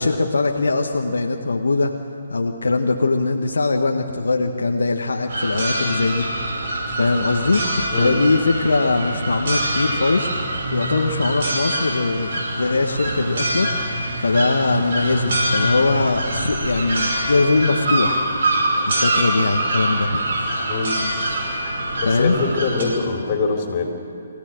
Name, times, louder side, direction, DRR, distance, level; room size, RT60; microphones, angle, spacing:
voice 1, 0.0-1.9 2.3-6.3 7.0-10.3 10.7-18.2 18.9-20.2 22.0-22.3, left 3 dB, 80° left, 2 dB, 1.5 m, -21 dB
sound 1, 5.3-22.8, right 1 dB, 60° right, 5.7 m, -24 dB
voice 2, 22.0-23.9, left 4 dB, 35° left, 2 dB, 4.3 m, -23 dB
24.5 x 17.0 x 7.8 m, 2.6 s
hypercardioid pair, 145°, 0 cm